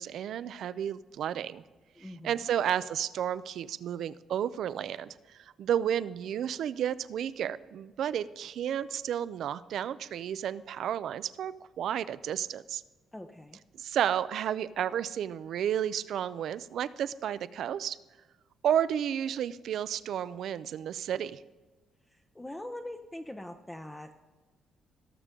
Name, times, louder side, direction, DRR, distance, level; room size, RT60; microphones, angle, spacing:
voice 1, 0.0-1.6 2.2-5.1 5.6-12.8 13.8-18.0 18.6-21.4, right 9 dB, 70° right, 15 dB, 0.4 m, -32 dB
voice 2, 2.0-2.5 13.1-13.6 22.1-24.1, left 1 dB, 10° left, 4 dB, 0.7 m, -43 dB
18.0 x 6.7 x 3.7 m, 1.3 s
cardioid pair, 90°, 0 cm